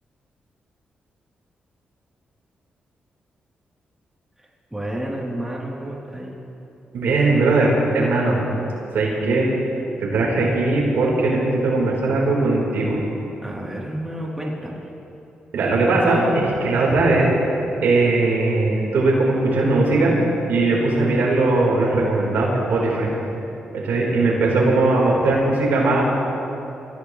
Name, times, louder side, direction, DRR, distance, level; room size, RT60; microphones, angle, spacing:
voice 1, 4.4-6.4 13.4-14.9, right 1 dB, 10° right, -4 dB, 3.6 m, -31 dB
voice 2, 6.9-8.4 8.9-9.5 10.0-13.0 15.5-17.3 17.8-20.1 20.5-23.1 23.8-26.0, right 2 dB, 80° right, -4 dB, 4.5 m, -19 dB
25.0 x 15.5 x 3.3 m, 2.9 s
cardioid pair, 70°, 3 cm